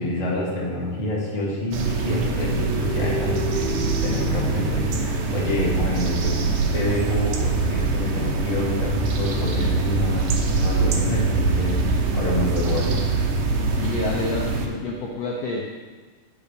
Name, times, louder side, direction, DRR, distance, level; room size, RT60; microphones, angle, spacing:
voice 1, 0.0-3.8 4.0-6.4 6.7-11.8 12.1-13.0, left 1 dB, 20° left, -5 dB, 1.1 m, -27 dB
sound 1, 1.6-5.4, right 1 dB, 20° right, 0.4 m, -33 dB
sound 2, 1.7-14.7, right 3 dB, 80° right, 2.6 m, -23 dB
voice 2, 13.8-15.9, left 3 dB, 85° left, -1 dB, 1.4 m, -29 dB
8.8 x 5.7 x 5.2 m, 1.4 s
omnidirectional pair, 3.9 m